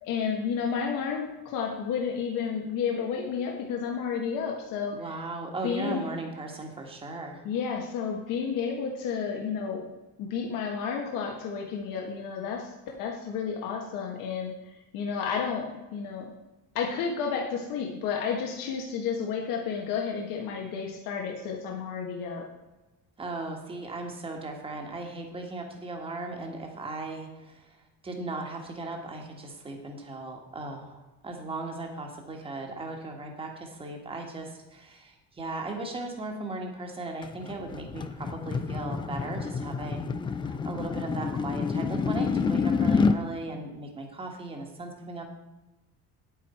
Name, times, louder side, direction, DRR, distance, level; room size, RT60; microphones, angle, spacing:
voice 1, 0.0-4.9 5.6-6.0 7.4-9.9 10.2-16.2 16.7-22.4, left 6 dB, 75° left, 0 dB, 1.6 m, -31 dB
voice 2, 4.9-7.4 23.2-40.1 40.4-45.3, right 2 dB, 15° right, 2 dB, 1.5 m, -37 dB
sound 1, 37.2-43.2, left 5 dB, 15° left, 0.3 m, -28 dB
9.4 x 9.4 x 4.4 m, 1.1 s
cardioid pair, 170°, 33 cm